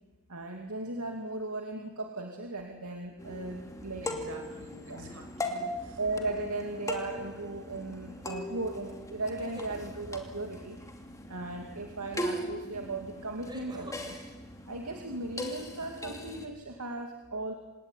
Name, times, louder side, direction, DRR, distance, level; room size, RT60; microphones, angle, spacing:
voice 1, 0.3-4.1 4.9-5.0 6.0-10.8 11.3-14.2 14.7-17.5, right 2 dB, 80° right, 2 dB, 2.6 m, -37 dB
sound 1, 3.2-16.5, left 1 dB, 15° left, 2.7 m, -40 dB
voice 2, 4.0-6.0, right 1 dB, 65° right, 4 dB, 6.9 m, -47 dB
sound 2, 6.6-7.0 9.2-9.8 12.1-12.2 13.4-14.0, equal, 20° right, 4.2 m, -47 dB
27.0 x 18.5 x 9.9 m, 1.2 s
head